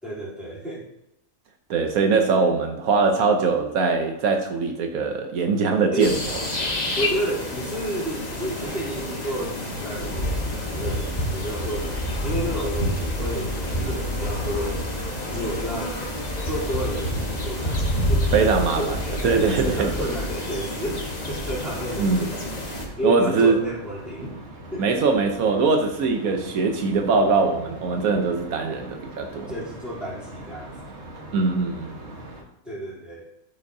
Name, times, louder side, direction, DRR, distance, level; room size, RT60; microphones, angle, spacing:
voice 1, 0.0-0.9 5.9-6.2 7.0-12.0 12.2-16.0 16.4-17.8 18.1-19.0 19.6-22.4 23.0-24.4 24.7-24.9 29.5-31.0 32.6-33.3, right 1 dB, ahead, -8 dB, 3.2 m, -31 dB
voice 2, 1.7-6.2 18.3-19.0 19.2-19.9 22.0-22.3 23.0-23.6 24.8-29.5 31.3-32.0, right 4 dB, 75° right, 4 dB, 1.2 m, -22 dB
sound 1, 6.0-22.9, left 1 dB, 30° left, 1.3 m, -28 dB
sound 2, 13.5-32.4, right 1 dB, 50° right, 1.5 m, -42 dB
13.0 x 5.2 x 2.7 m, 0.90 s
omnidirectional pair, 1.5 m